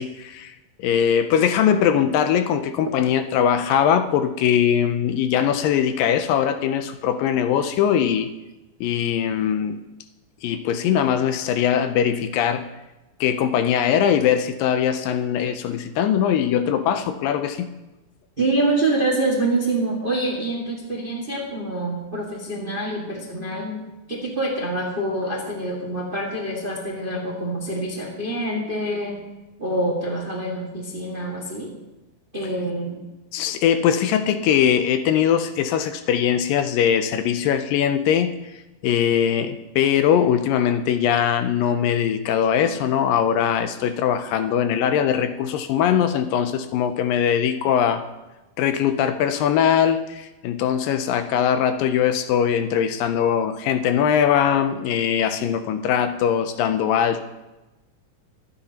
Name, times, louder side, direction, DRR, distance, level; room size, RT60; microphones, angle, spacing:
voice 1, 0.0-8.3 8.8-9.8 10.4-12.7 13.2-17.7 33.3-38.3 38.8-48.1 48.6-57.2, left 9 dB, 80° left, 9 dB, 2.2 m, -21 dB
voice 2, 18.4-23.8 24.1-29.2 29.6-31.7 32.3-33.0, right 2 dB, 30° right, -2 dB, 1.0 m, -26 dB
24.0 x 9.7 x 2.9 m, 1.0 s
omnidirectional pair, 4.2 m